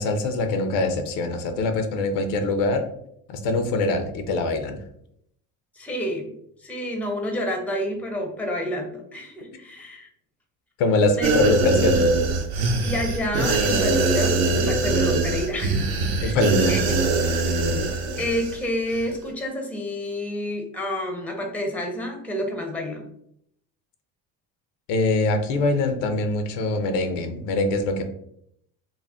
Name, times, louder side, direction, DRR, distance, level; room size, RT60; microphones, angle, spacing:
voice 1, 0.0-2.8 3.3-4.8 10.8-12.0 16.2-16.8 24.9-28.0, left 2 dB, 80° left, 7 dB, 0.6 m, -23 dB
voice 2, 5.7-6.3 6.6-10.1 11.2-11.4 12.8-15.8 16.2-16.4 16.7-17.2 18.2-23.1, left 1 dB, 5° left, 2 dB, 0.5 m, -29 dB
sound 1, 11.2-18.6 18.9-19.0, right 3 dB, 60° right, 0.7 m, -22 dB
2.5 x 2.0 x 3.4 m, 0.72 s
supercardioid pair, 90°, 43 cm